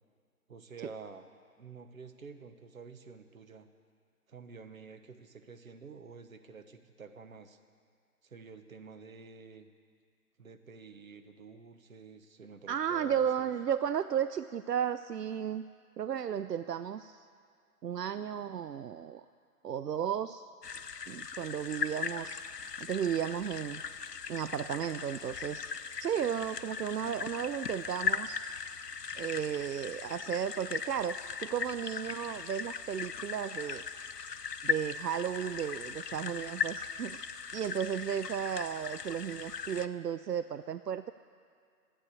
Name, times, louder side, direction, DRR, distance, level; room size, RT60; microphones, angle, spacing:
voice 1, 0.5-1.2 1.6-3.7 4.3-7.6 8.2-9.7 10.4-13.5, right 5 dB, 60° right, 7 dB, 1.2 m, -49 dB
voice 2, 12.7-15.6 16.0-17.2 17.8-19.2 19.6-20.5 21.1-22.4 22.8-23.8 24.3-25.7 26.0-28.4 29.1-33.8 34.6-41.1, right 8 dB, 85° right, 12 dB, 0.5 m, -34 dB
sound 1, 20.6-39.9, left 6 dB, 85° left, 0.7 m, -38 dB
13.5 x 8.7 x 8.3 m, 2.2 s
figure-of-eight pair, 145°, 47 cm